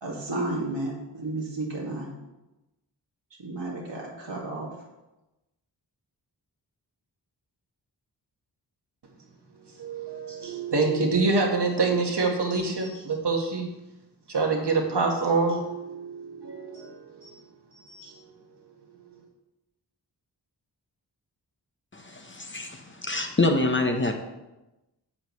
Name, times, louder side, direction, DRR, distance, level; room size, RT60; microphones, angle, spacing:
voice 1, 0.0-2.1 3.4-4.7, right 2 dB, 85° right, -2 dB, 2.2 m, -32 dB
voice 2, 9.8-13.7 14.3-17.3 17.9-18.1, right 3 dB, 65° right, 2 dB, 1.8 m, -26 dB
voice 3, 21.9-24.1, left 2 dB, 25° left, 4 dB, 1.1 m, -26 dB
9.6 x 7.8 x 3.2 m, 1.0 s
wide cardioid pair, 65°, 43 cm